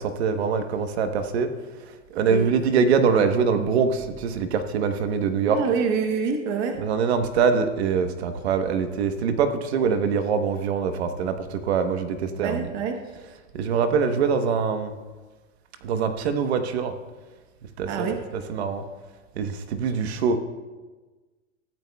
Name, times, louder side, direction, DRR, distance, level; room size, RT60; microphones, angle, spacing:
voice 1, 0.0-5.7 6.8-12.7 13.2-14.9 15.8-17.0 17.8-18.8 19.3-20.4, right 6 dB, 55° right, 8 dB, 1.1 m, -24 dB
voice 2, 5.5-6.8 12.4-13.0 17.9-18.2, right 5 dB, 25° right, 5 dB, 0.9 m, -26 dB
22.5 x 13.5 x 2.3 m, 1.3 s
supercardioid pair, 175°, 38 cm